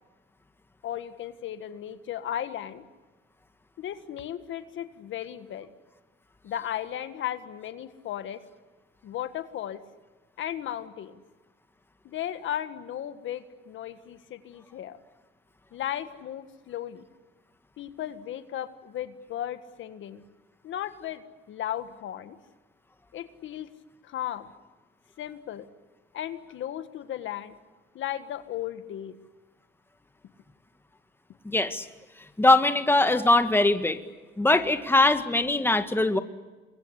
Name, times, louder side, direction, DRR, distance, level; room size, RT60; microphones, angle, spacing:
voice 1, 0.8-2.8 3.8-5.7 6.4-8.4 9.0-9.8 10.4-11.2 12.0-15.0 15.7-17.1 17.8-20.2 20.6-22.4 23.1-23.7 24.0-24.5 25.2-25.7 26.1-27.5 27.9-29.2, left 11 dB, 75° left, 10 dB, 1.7 m, -35 dB
voice 2, 31.5-31.9 32.4-34.0 34.4-36.2, left 2 dB, 10° left, 8 dB, 1.9 m, -21 dB
27.5 x 22.0 x 8.3 m, 1.2 s
cardioid pair, 90°, 20 cm